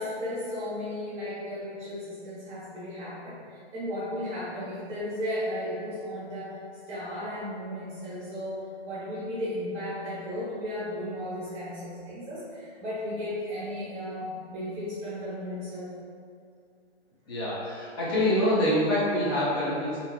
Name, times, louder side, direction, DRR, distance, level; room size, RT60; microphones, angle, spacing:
voice 1, 0.0-3.4 3.7-6.6 6.9-8.6 8.8-15.9, left 1 dB, 20° right, -12 dB, 1.0 m, -35 dB
voice 2, 17.3-20.0, left 1 dB, 20° left, -8 dB, 0.5 m, -25 dB
2.7 x 2.4 x 2.3 m, 2.3 s
hypercardioid pair, 155°, 33 cm